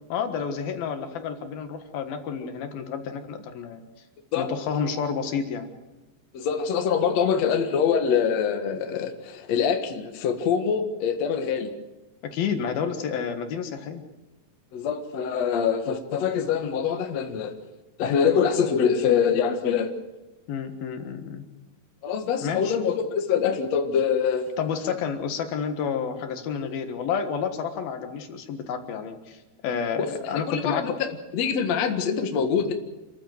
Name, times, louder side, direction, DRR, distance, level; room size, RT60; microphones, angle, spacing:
voice 1, 0.1-3.8 4.4-5.7 12.2-14.0 20.5-21.5 22.4-22.8 24.6-30.9, left 6 dB, 70° left, 6 dB, 3.3 m, -30 dB
voice 2, 6.3-11.7 14.7-17.5 18.0-19.9 22.0-24.4 30.0-31.1 31.3-32.7, left 7 dB, 55° left, 5 dB, 2.4 m, -24 dB
28.0 x 14.5 x 7.8 m, 1.1 s
omnidirectional pair, 4.5 m